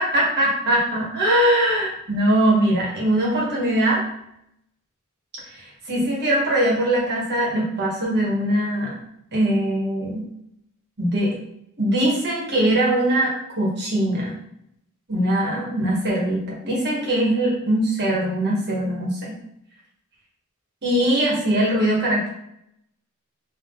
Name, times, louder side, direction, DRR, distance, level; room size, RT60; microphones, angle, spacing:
voice 1, 0.0-4.0 5.6-8.9 9.3-10.2 11.0-11.3 11.8-14.3 15.1-19.4 20.8-22.3, right 1 dB, 50° right, -3 dB, 1.5 m, -21 dB
3.7 x 3.1 x 3.8 m, 0.76 s
head